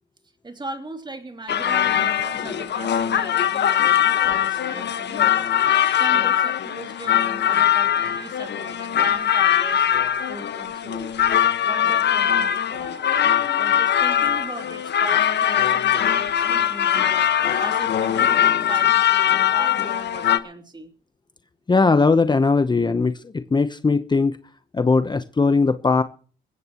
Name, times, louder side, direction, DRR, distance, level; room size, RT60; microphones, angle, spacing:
voice 1, 0.4-5.5 5.9-9.9 10.3-11.1 11.6-20.9, right 2 dB, 20° right, 3.2 m, -38 dB
sound 1, 1.5-20.4, left 10 dB, 60° left, 1.4 m, -21 dB
voice 2, 21.7-24.4 24.7-26.0, left 4 dB, 20° left, 0.9 m, -19 dB
21.0 x 15.5 x 3.1 m
cardioid pair, 90°, 20 cm